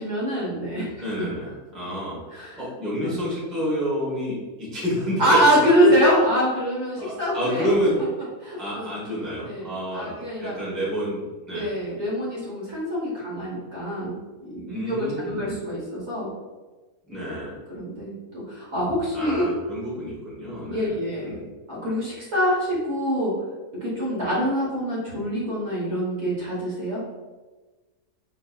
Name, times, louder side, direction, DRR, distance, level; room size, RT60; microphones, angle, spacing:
voice 1, 0.0-0.9 2.3-2.6 3.0-3.2 5.2-7.7 8.4-8.8 9.4-10.5 11.5-16.3 17.2-17.3 17.7-19.5 20.7-23.3 23.8-27.0, equal, 50° right, -6 dB, 1.2 m, -25 dB
voice 2, 1.0-2.2 2.6-6.0 7.0-7.9 8.6-11.2 11.5-11.7 14.7-15.6 17.1-17.6 19.1-21.0 21.2-21.4, equal, ahead, -7 dB, 0.6 m, -29 dB
3.9 x 2.6 x 2.3 m, 1.3 s
omnidirectional pair, 1.7 m